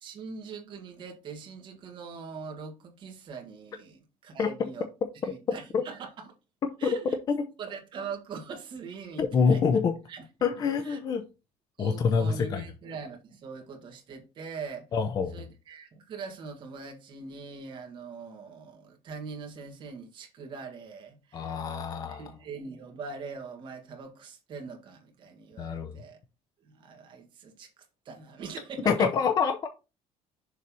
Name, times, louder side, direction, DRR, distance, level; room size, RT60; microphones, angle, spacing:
voice 1, 0.0-4.9 5.2-6.3 6.8-7.2 7.6-9.8 10.1-10.2 10.6-11.0 11.8-14.9 15.3-21.6 22.1-26.2 26.6-29.1, right 5 dB, 40° right, 1.7 m, -42 dB
voice 2, 9.2-9.9 10.4-11.2 11.8-12.6 14.9-15.3 21.3-22.3 25.6-26.0 28.9-29.7, left 6 dB, 30° left, 0.6 m, -26 dB
6.7 x 3.2 x 5.4 m
cardioid pair, 170°, 13 cm